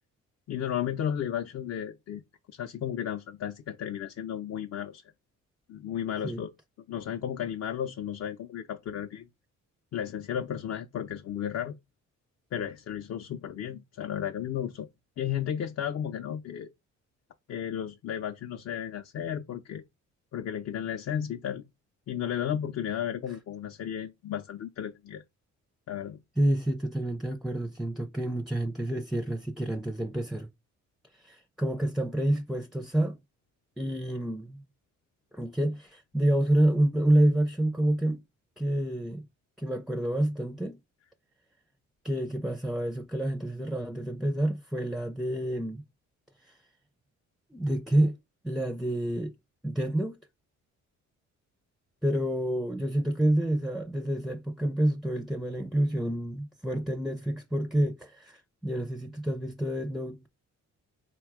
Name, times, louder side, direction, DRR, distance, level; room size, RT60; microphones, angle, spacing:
voice 1, 0.5-2.2 2.5-5.0 5.7-6.5 6.9-9.3 9.9-11.7 12.5-14.9 15.2-16.7 17.5-19.8 20.3-21.6 22.1-25.2 25.9-26.2, left 9 dB, 55° left, 0.6 m, -33 dB
voice 2, 26.4-30.5 31.2-33.2 33.8-34.6 35.3-38.2 38.6-39.3 39.6-40.8 42.0-45.9 47.5-48.1 48.4-49.3 49.6-50.2 52.0-60.3, right 1 dB, ahead, 0.4 m, -28 dB
4.3 x 2.3 x 4.7 m
cardioid pair, 90°, 30 cm